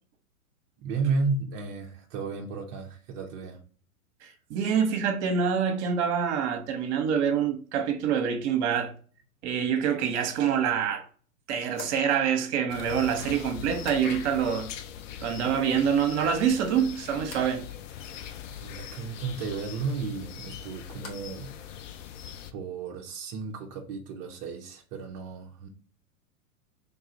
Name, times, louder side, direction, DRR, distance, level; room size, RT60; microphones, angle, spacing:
voice 1, 0.8-3.6 18.6-21.5 22.5-25.7, right 4 dB, 25° right, 0.4 m, -33 dB
voice 2, 4.2-8.9 9.4-11.1 11.5-14.7 15.2-17.7, right 7 dB, 50° right, 0.8 m, -26 dB
sound 1, 11.7-14.6 14.8-15.4 15.8-16.4 17.2-17.6 20.0-21.4 21.7-22.3, left 3 dB, 75° left, 1.5 m, -50 dB
sound 2, 12.7-22.5, left 9 dB, 60° left, 0.5 m, -41 dB
3.3 x 2.3 x 3.9 m
hypercardioid pair, 105°, 45 cm